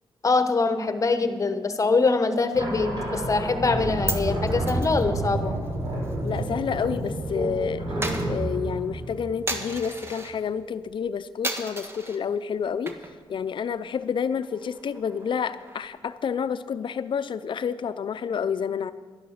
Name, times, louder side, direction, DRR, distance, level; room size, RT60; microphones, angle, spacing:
voice 1, 0.2-5.5, left 3 dB, 35° left, 9 dB, 1.1 m, -23 dB
sound 1, 2.5-9.9, right 1 dB, 50° right, 4.4 m, -29 dB
Coin (dropping), 3.8-7.2 7.4-10.4 10.8-11.1 11.4-12.2 12.7-13.3 13.6-13.7 14.1-16.0, right 2 dB, 25° right, 1.4 m, -36 dB
voice 2, 6.2-7.9 8.3-13.0 13.3-18.9, left 7 dB, 60° left, 13 dB, 0.6 m, -29 dB
11.5 x 11.0 x 6.6 m, 1.4 s
cardioid pair, 80°, 9 cm